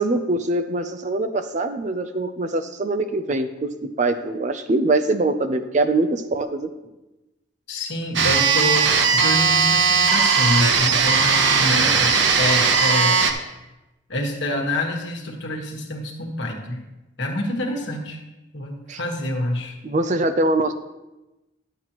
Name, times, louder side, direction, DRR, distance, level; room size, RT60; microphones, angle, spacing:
voice 1, 0.0-3.7 4.0-6.7 18.9-19.0 19.8-20.7, right 2 dB, 40° right, 8 dB, 0.5 m, -23 dB
voice 2, 7.7-13.2 14.1-16.8 17.2-18.2 18.5-19.7, left 1 dB, 70° left, 1 dB, 1.4 m, -27 dB
sound 1, 8.2-13.3, right 5 dB, 75° right, 0.8 m, -18 dB
11.5 x 7.7 x 3.0 m, 1.0 s
head